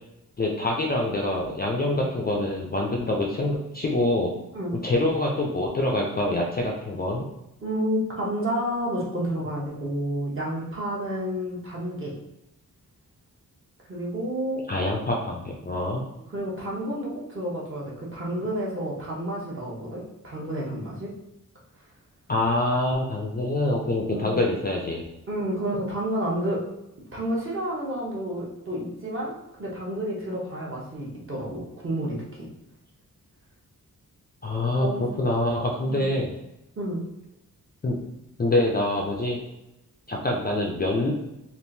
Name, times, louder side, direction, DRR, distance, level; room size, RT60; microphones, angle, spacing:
voice 1, 0.4-4.3 4.8-7.3 14.7-16.0 22.3-25.1 34.4-34.9 35.2-36.3 37.8-38.0 38.4-39.4 40.1-41.1, left 1 dB, 30° left, -1 dB, 0.4 m, -25 dB
voice 2, 7.6-12.1 13.9-14.6 16.2-21.1 24.1-24.4 25.3-26.6 27.1-29.3 29.6-32.5 34.8-35.0 35.8-36.1 36.8-37.0, right 1 dB, 35° right, -4 dB, 0.9 m, -30 dB
3.5 x 2.5 x 2.6 m, 0.89 s
wide cardioid pair, 160°, 35 cm